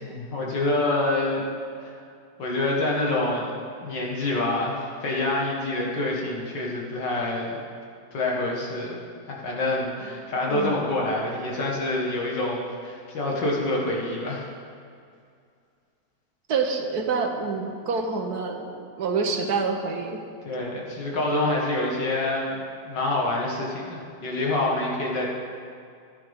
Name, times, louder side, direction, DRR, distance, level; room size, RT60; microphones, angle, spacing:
voice 1, 0.0-1.5 1.8-1.9 2.4-3.5 3.8-7.6 8.1-9.0 9.3-14.5 20.4-22.5 22.9-25.3, left 2 dB, 75° left, -3 dB, 2.3 m, -26 dB
voice 2, 10.5-10.8 16.5-20.3, right 4 dB, 65° right, 3 dB, 1.4 m, -27 dB
14.5 x 10.0 x 3.6 m, 2.3 s
omnidirectional pair, 2.0 m